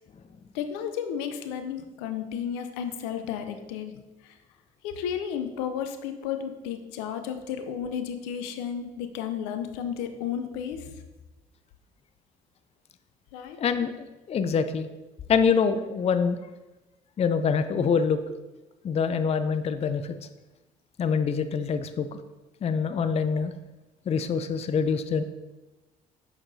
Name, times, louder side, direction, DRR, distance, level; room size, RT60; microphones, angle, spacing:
voice 1, 0.5-3.9 4.2-4.3 4.8-10.9 13.3-13.6, left 8 dB, 80° left, 7 dB, 0.6 m, -33 dB
voice 2, 13.6-14.9 15.3-16.4 17.2-18.2 18.8-20.2 21.0-22.1 22.6-23.5 24.1-25.2, left 6 dB, 35° left, 10 dB, 0.5 m, -25 dB
6.4 x 5.8 x 2.7 m, 1.1 s
hypercardioid pair, 55°, 19 cm